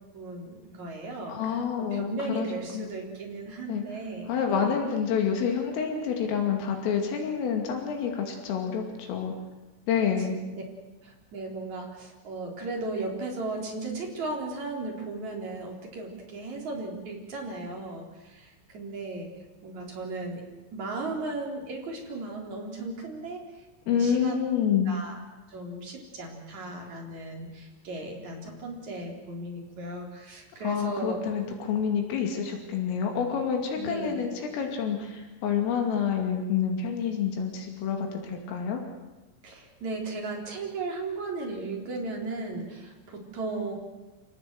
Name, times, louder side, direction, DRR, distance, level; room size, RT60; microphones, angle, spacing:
voice 1, 0.1-4.7 10.3-10.6 11.0-19.3 19.6-20.4 20.7-23.4 23.8-24.4 24.7-25.2 25.5-31.2 33.8-34.2 39.4-43.7, right 2 dB, 40° right, 0 dB, 4.8 m, -36 dB
voice 2, 1.3-2.5 2.7-2.9 3.7-3.8 4.3-9.3 9.9-10.4 23.9-24.9 30.6-38.8, left 7 dB, 80° left, 3 dB, 5.0 m, -28 dB
28.0 x 18.0 x 8.0 m, 1.1 s
omnidirectional pair, 5.8 m